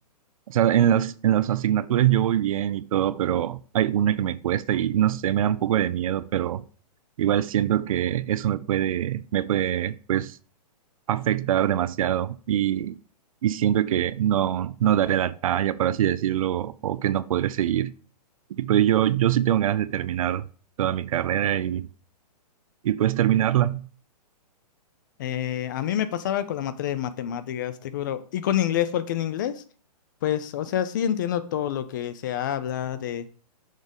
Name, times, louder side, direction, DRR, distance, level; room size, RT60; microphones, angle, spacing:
voice 1, 0.5-6.6 7.2-10.4 11.1-13.0 13.4-17.9 18.6-20.4 20.8-21.9 22.8-23.8, right 11 dB, 55° right, 0.4 m, -23 dB
voice 2, 25.2-29.6 30.2-33.3, left 10 dB, 30° left, 0.4 m, -27 dB
6.3 x 3.7 x 5.2 m
hypercardioid pair, 160°, 21 cm